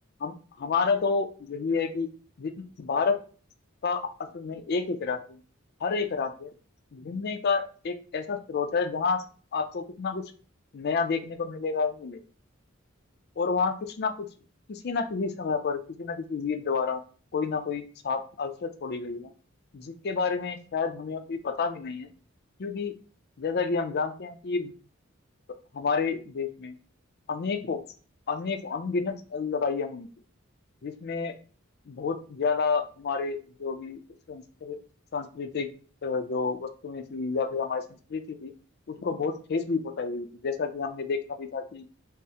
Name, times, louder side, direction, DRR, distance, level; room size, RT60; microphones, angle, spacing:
voice 1, 0.2-2.1 2.4-2.5 2.8-3.2 3.8-5.4 5.8-6.5 6.9-9.2 9.5-10.2 10.7-12.2 13.4-14.3 14.7-17.0 17.3-19.3 19.7-22.1 22.6-22.9 23.4-24.7 25.7-26.7 27.3-27.8 28.3-30.1 30.8-31.3 31.9-34.0 34.3-34.8 35.1-35.7 36.0-38.5 38.9-41.9, left 5 dB, 50° left, 8 dB, 0.4 m, -30 dB
5.5 x 2.0 x 2.8 m, 0.40 s
head